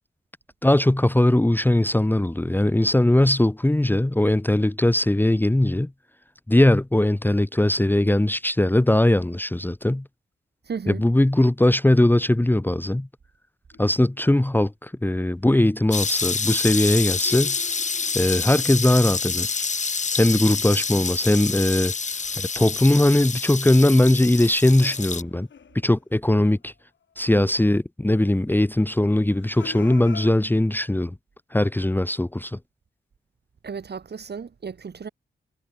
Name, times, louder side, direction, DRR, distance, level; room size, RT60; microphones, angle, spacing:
voice 1, 0.6-5.9 6.5-10.1 10.9-13.1 13.8-17.5 18.1-19.7 20.2-21.9 22.4-25.5 25.8-26.7 27.2-31.1 31.5-32.6, left 1 dB, 10° left, 1.2 m, -20 dB
voice 2, 10.6-11.0 33.6-35.1, right 6 dB, 60° right, 4.2 m, -34 dB
sound 1, 13.7-14.5 16.6-19.1 22.1-22.8 23.0-26.7 27.1-27.2 29.3-30.3, left 7 dB, 75° left, 6.3 m, -46 dB
sound 2, 15.9-25.2, left 5 dB, 40° left, 1.1 m, -27 dB
cardioid pair, 80°, 19 cm